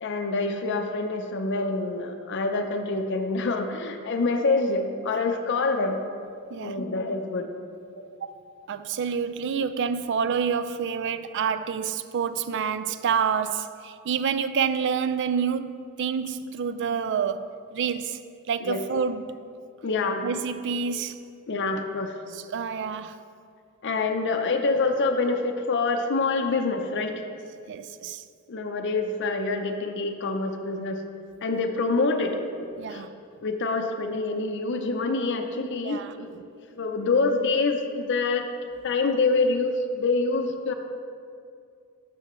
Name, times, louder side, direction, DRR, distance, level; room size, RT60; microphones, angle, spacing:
voice 1, 0.0-6.0 6.6-7.5 8.0-8.1 18.6-18.8 19.8-20.3 21.5-22.2 23.8-27.2 28.5-31.0 31.4-33.0 33.4-36.3 36.8-38.5 38.8-40.7, left 3 dB, 55° left, 0.6 m, -26 dB
voice 2, 8.7-18.2 18.5-19.3 20.2-21.2 22.3-23.2 27.7-28.2 32.8-33.1 35.8-36.4, right 6 dB, 55° right, 0.4 m, -28 dB
12.5 x 6.8 x 3.1 m
head